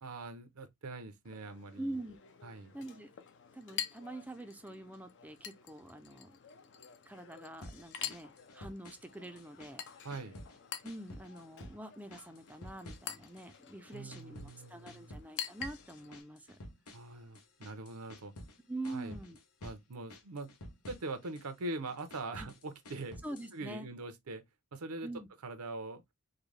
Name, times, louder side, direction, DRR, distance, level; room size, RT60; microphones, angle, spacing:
voice 1, 0.0-2.0 2.4-2.7 10.0-10.4 13.9-15.2 16.9-18.3 18.9-19.2 19.6-20.5 20.9-23.3 23.5-24.4 24.7-25.1 25.4-26.0, right 2 dB, 80° right, 0.7 m, -43 dB
Chink clink, 1.2-16.2, left 8 dB, 55° left, 0.5 m, -47 dB
voice 2, 1.8-2.2 2.7-3.1 3.5-6.4 7.1-9.8 10.8-16.6 18.7-19.4 22.4-22.5 23.2-23.9 25.0-25.3, right 1 dB, 5° right, 0.4 m, -45 dB
sound 1, 7.6-9.1 9.4-10.6 10.8-11.8 12.1-13.6 13.8-18.6 18.8-19.8 20.1-21.5 21.9-23.6, left 1 dB, 90° left, 0.9 m, -51 dB
3.8 x 2.2 x 3.3 m
head